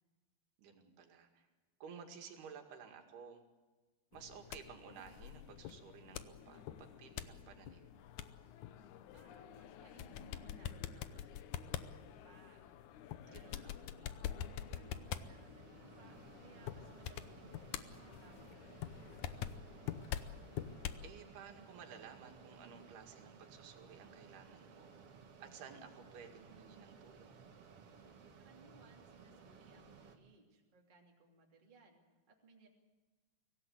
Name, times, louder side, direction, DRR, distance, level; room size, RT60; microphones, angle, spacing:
voice 1, 0.6-1.5 1.8-3.4 4.1-7.9 13.3-13.8 21.0-25.1 25.4-27.4, right 6 dB, 75° right, 4 dB, 4.1 m, -54 dB
sound 1, 4.1-21.1, left 10 dB, 85° left, 1.7 m, -46 dB
voice 2, 9.1-12.6 13.2-19.9 28.4-32.7, right 2 dB, 15° right, 0 dB, 2.5 m, -64 dB
Mechanisms, 12.4-30.2, right 5 dB, 50° right, 2.0 m, -59 dB
24.0 x 17.5 x 8.2 m, 1.3 s
omnidirectional pair, 4.6 m